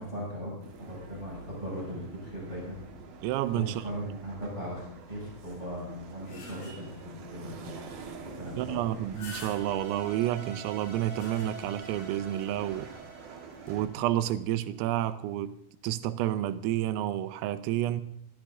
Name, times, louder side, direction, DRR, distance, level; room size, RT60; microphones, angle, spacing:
voice 1, 0.0-2.8 3.5-9.0, equal, 10° right, 6.7 m, -39 dB
sound 1, 0.6-13.9, right 4 dB, 55° right, 3.1 m, -47 dB
voice 2, 3.2-3.8 8.6-12.9 13.7-15.6 15.8-18.0, right 13 dB, 85° right, 3.4 m, -30 dB
sound 2, 6.2-7.1 7.7-7.8 8.1-8.2 8.9-10.0 10.7-11.9 12.3-12.4 13.5-13.7, left 2 dB, 65° left, 6.3 m, -47 dB
sound 3, 9.2-14.5, right 5 dB, 30° right, 6.1 m, -46 dB
21.5 x 14.0 x 3.8 m
omnidirectional pair, 5.9 m